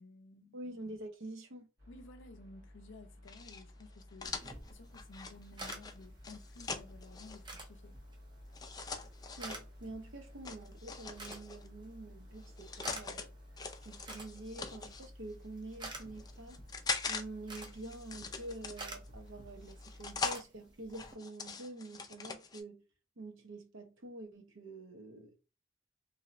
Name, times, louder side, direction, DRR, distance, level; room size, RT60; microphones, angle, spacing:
voice 1, 0.0-0.6 1.9-8.0, left 2 dB, 70° left, 0.5 m, -55 dB
voice 2, 0.5-1.7 9.4-13.3 13.8-16.6 17.1-22.8 23.2-25.5, right 2 dB, 75° right, 0.7 m, -47 dB
sound 1, 1.8-20.3, left 1 dB, 55° right, 1.4 m, -54 dB
sound 2, 3.3-7.4 8.5-9.6 10.4-11.7 12.4-13.2 13.6-15.1 15.7-17.2 17.5-19.1 19.6-20.4 20.9-22.6, left 4 dB, 20° left, 0.4 m, -42 dB
sound 3, 4.2-21.1, right 2 dB, 25° right, 0.7 m, -52 dB
3.0 x 2.7 x 2.5 m
head